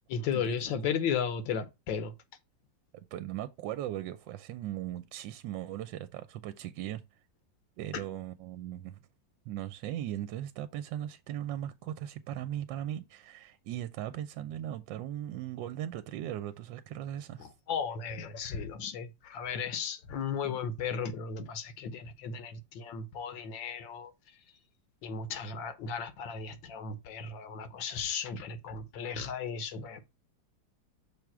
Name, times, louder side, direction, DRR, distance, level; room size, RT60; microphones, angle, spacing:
voice 1, 0.1-2.1 7.9-8.0 17.4-24.4 25.0-30.0, left 6 dB, 80° left, 1.7 m, -35 dB
voice 2, 2.9-7.0 7.8-9.0 9.5-17.5, right 12 dB, 75° right, 1.2 m, -38 dB
6.2 x 3.5 x 5.9 m
omnidirectional pair, 2.1 m